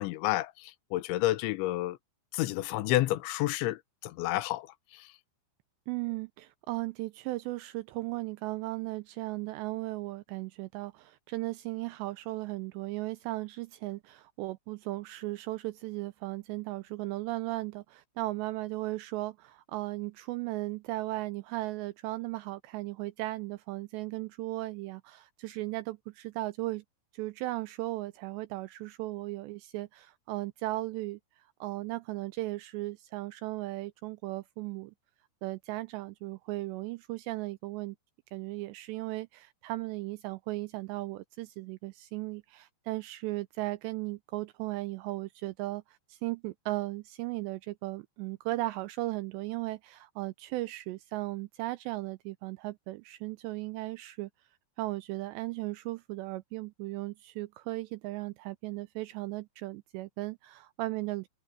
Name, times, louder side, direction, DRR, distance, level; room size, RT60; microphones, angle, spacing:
voice 1, 0.0-2.0 2.3-4.7 4.9-5.1, left 17 dB, 85° left, 3.3 m, -30 dB
voice 2, 5.9-26.8 27.1-34.9 35.4-38.0 38.3-54.3 54.8-61.3, right 19 dB, 85° right, 2.6 m, -36 dB
omnidirectional pair, 5.3 m